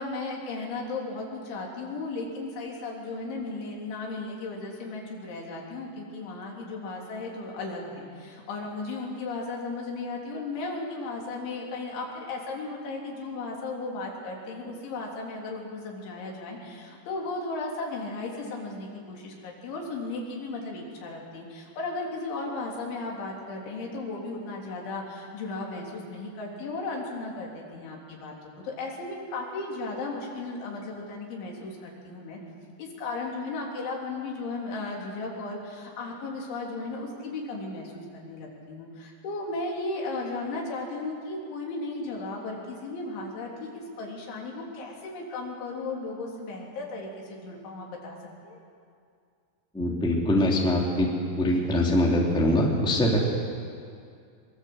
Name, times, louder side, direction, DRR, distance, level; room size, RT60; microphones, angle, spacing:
voice 1, 0.0-32.4 32.8-48.2 48.4-48.6, left 3 dB, 80° left, -1 dB, 5.8 m, -35 dB
voice 2, 49.7-51.1 51.4-53.2, left 1 dB, ahead, -2 dB, 2.1 m, -23 dB
23.5 x 22.5 x 8.0 m, 2.3 s
omnidirectional pair, 5.3 m